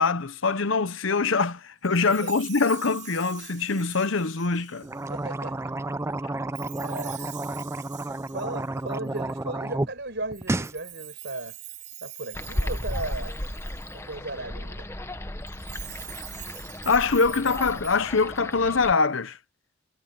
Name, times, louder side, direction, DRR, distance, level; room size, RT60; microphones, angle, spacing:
voice 1, 0.0-4.9 16.8-19.4, left 4 dB, 60° left, 0.9 m, -24 dB
Chime, 1.8-5.2 6.5-9.4 10.3-14.1 15.4-18.5, right 13 dB, 35° right, 6.0 m, -44 dB
voice 2, 1.9-2.3 5.1-5.6 6.8-7.3 8.1-11.6 12.0-13.4 13.9-14.9, right 2 dB, 55° right, 5.7 m, -36 dB
sound 1, 4.8-9.9 10.2-10.8, right 2 dB, 10° right, 0.3 m, -31 dB
sound 2, 12.3-18.9, left 1 dB, 10° left, 0.9 m, -35 dB
head